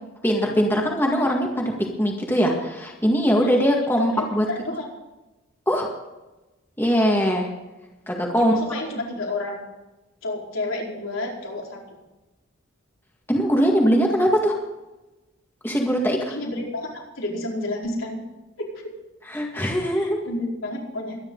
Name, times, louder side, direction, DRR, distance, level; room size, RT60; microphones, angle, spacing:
voice 1, 0.2-1.7 2.0-4.4 5.7-5.9 6.8-7.5 8.1-8.6 13.3-14.5 15.6-16.3 19.3-20.2, equal, 10° left, -1 dB, 1.9 m, -21 dB
voice 2, 4.0-4.8 8.4-9.6 10.2-11.8 16.3-16.9 17.2-18.2 19.9-21.2, left 2 dB, 80° left, -2 dB, 4.5 m, -30 dB
23.5 x 10.5 x 3.9 m, 1.1 s
head